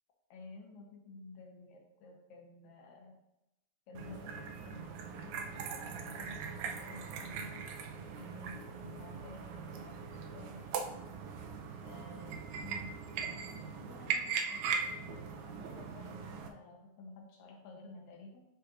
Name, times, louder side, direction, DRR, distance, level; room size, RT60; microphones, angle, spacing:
voice 1, 0.3-3.2 3.9-10.9 11.8-13.0 13.3-18.5, left 3 dB, 80° left, -1 dB, 2.6 m, -53 dB
sound 1, 3.9-16.5, right 6 dB, 80° right, 1.6 m, -40 dB
9.7 x 4.4 x 2.5 m, 0.86 s
omnidirectional pair, 3.9 m